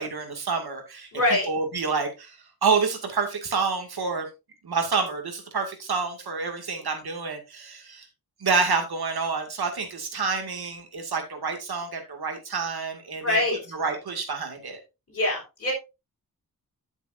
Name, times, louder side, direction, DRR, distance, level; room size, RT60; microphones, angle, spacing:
voice 1, 0.0-1.1 1.5-4.3 4.6-8.1 8.4-13.4 13.7-14.8, right 4 dB, 85° right, 4 dB, 2.4 m, -28 dB
voice 2, 1.1-1.5 13.2-13.6 15.1-15.7, left 1 dB, 40° left, -3 dB, 4.9 m, -24 dB
10.0 x 7.9 x 2.7 m, 0.26 s
wide cardioid pair, 100°, 37 cm